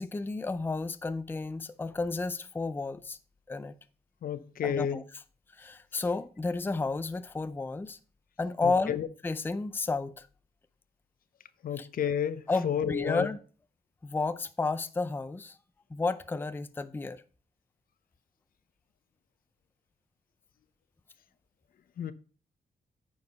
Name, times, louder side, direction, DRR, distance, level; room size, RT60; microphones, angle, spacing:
voice 1, 0.0-3.2 3.5-3.7 4.6-5.0 5.6-8.0 8.4-9.0 9.2-10.3 11.8-11.9 12.5-13.4 14.0-15.6 15.9-17.2, left 3 dB, 15° left, 0.5 m, -32 dB
voice 2, 4.2-5.0 8.6-9.1 11.6-13.3 22.0-22.1, left 9 dB, 65° left, 0.7 m, -31 dB
9.5 x 4.8 x 5.3 m
cardioid pair, 105°, 16 cm